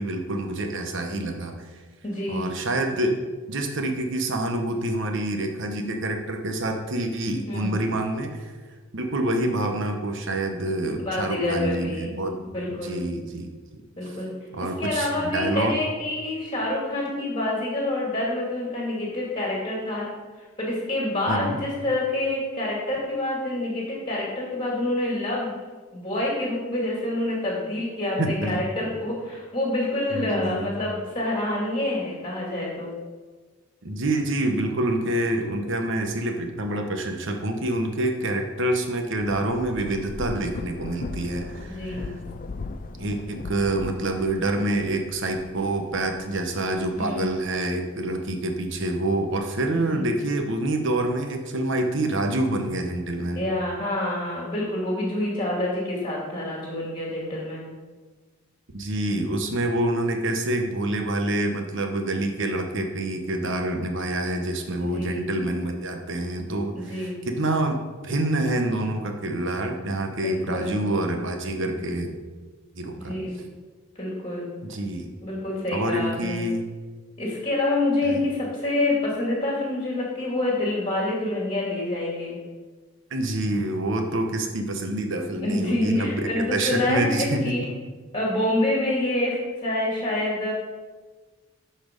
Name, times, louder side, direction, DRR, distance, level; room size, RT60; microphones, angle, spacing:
voice 1, 0.0-1.5 2.3-3.2 3.5-8.5 8.9-12.4 12.7-13.5 14.5-15.7 21.3-21.6 28.2-28.7 30.1-30.8 33.8-42.1 43.0-53.4 58.7-72.1 72.7-73.1 74.6-75.1 75.7-76.7 78.0-78.2 83.1-87.6, right 1 dB, 60° right, 4 dB, 1.1 m, -27 dB
voice 2, 2.0-2.5 7.5-7.8 11.0-12.1 12.5-13.0 14.0-14.3 14.6-20.1 20.4-25.5 25.9-32.9 41.7-42.1 47.0-47.3 49.9-50.1 53.4-57.7 64.9-65.3 66.7-67.2 70.2-70.7 73.0-73.3 74.0-74.5 75.2-76.5 77.2-82.4 85.4-87.6 88.1-90.5, left 1 dB, 20° left, -4 dB, 2.3 m, -27 dB
Thunder / Rain, 38.9-47.8 48.3-49.7, left 3 dB, 40° left, 0.4 m, -39 dB
11.0 x 4.4 x 5.2 m, 1.4 s
head